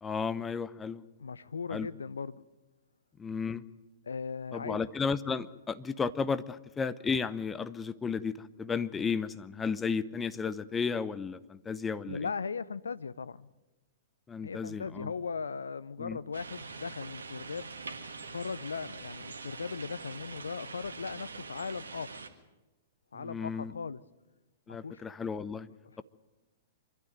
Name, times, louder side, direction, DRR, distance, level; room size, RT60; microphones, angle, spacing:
voice 1, 0.0-1.0 1.7-1.9 3.2-3.6 4.5-12.3 14.3-15.1 16.0-16.2 23.1-23.7 24.7-25.7, left 5 dB, 15° left, 0.7 m, -33 dB
voice 2, 1.2-2.4 4.0-4.8 12.0-13.5 14.4-17.7 18.3-22.2 23.1-24.0 24.7-25.0, left 5 dB, 70° left, 0.6 m, -38 dB
sound 1, 16.3-22.3, right 4 dB, 70° right, 1.7 m, -44 dB
24.5 x 12.0 x 9.2 m
figure-of-eight pair, 105°, 0 cm